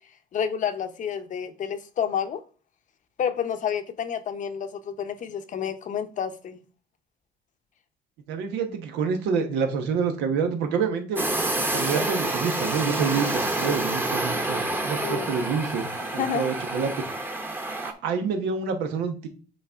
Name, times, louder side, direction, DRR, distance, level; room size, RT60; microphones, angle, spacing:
voice 1, 0.3-2.4 3.2-6.6 15.0-15.4 16.0-16.5, left 8 dB, 50° left, 0.8 m, -29 dB
voice 2, 8.3-11.2 11.6-15.9 16.1-16.9 17.8-19.3, right 5 dB, 90° right, 1.1 m, -27 dB
sound 1, 11.2-17.9, right 2 dB, 10° right, 0.9 m, -28 dB
7.6 x 4.2 x 3.5 m
cardioid pair, 110°, 17 cm